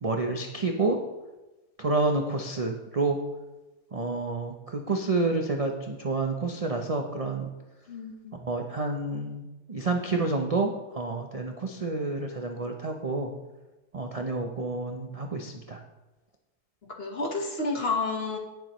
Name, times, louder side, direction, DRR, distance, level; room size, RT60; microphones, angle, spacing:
voice 1, 0.0-1.0 1.8-3.2 3.9-7.5 8.3-13.3 13.9-15.8, right 3 dB, 50° right, 3 dB, 0.4 m, -29 dB
voice 2, 7.9-8.3 17.0-18.4, left 3 dB, 40° left, 1 dB, 1.4 m, -30 dB
16.5 x 7.1 x 3.1 m, 1.1 s
omnidirectional pair, 1.7 m